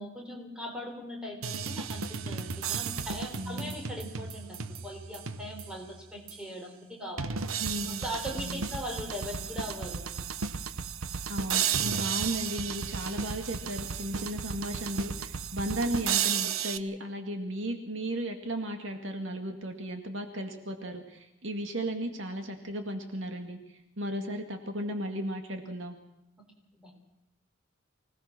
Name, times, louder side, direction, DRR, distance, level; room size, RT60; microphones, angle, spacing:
voice 1, 0.0-7.4 8.0-10.1 26.7-26.9, equal, 5° right, 1 dB, 4.4 m, -40 dB
sound 1, 1.4-5.8 6.3-6.4 7.2-16.8, right 7 dB, 85° right, 0.9 m, -34 dB
voice 2, 3.3-3.8 7.6-8.0 8.4-8.6 11.3-26.0, right 1 dB, 65° right, 5 dB, 2.2 m, -35 dB
25.0 x 18.0 x 6.2 m, 0.88 s
head